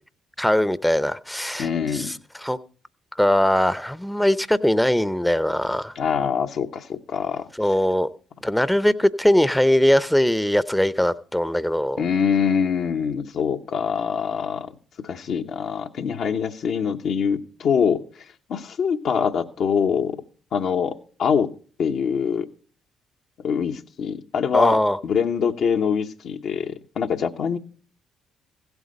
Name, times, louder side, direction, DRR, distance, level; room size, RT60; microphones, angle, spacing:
voice 1, 0.4-2.2 2.4-2.6 3.2-5.9 7.6-8.1 8.4-12.0 24.5-25.0, left 1 dB, 5° left, 16 dB, 0.7 m, -21 dB
voice 2, 1.6-2.2 5.9-7.5 12.0-14.7 15.0-18.2 18.5-20.2 20.5-21.5 21.8-22.5 23.4-27.6, left 7 dB, 60° left, 4 dB, 0.9 m, -24 dB
16.0 x 8.1 x 5.3 m, 0.41 s
hypercardioid pair, 50°, 0 cm